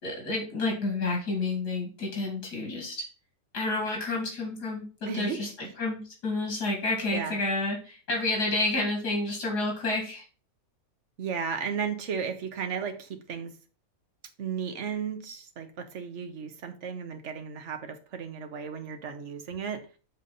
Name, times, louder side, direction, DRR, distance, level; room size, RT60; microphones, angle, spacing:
voice 1, 0.0-3.0 3.5-5.5 5.8-10.2, left 2 dB, 80° left, 2.8 m, -30 dB
voice 2, 5.1-5.5 7.1-7.4 11.2-13.6 14.4-19.9, right 6 dB, 50° right, 1.2 m, -34 dB
7.7 x 3.5 x 5.4 m
omnidirectional pair, 1.7 m